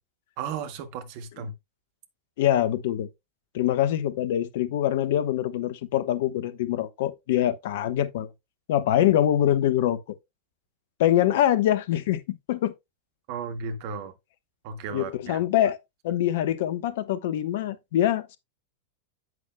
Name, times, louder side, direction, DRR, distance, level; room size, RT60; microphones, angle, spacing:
voice 1, 0.4-1.5 13.3-14.1 14.6-15.4, right 5 dB, 45° right, 1.7 m, -34 dB
voice 2, 2.4-3.1 3.5-8.3 8.7-10.0 11.0-12.7 14.9-15.8 16.0-18.4, left 12 dB, 55° left, 1.1 m, -24 dB
11.0 x 8.4 x 2.2 m
figure-of-eight pair, 90°, 0 cm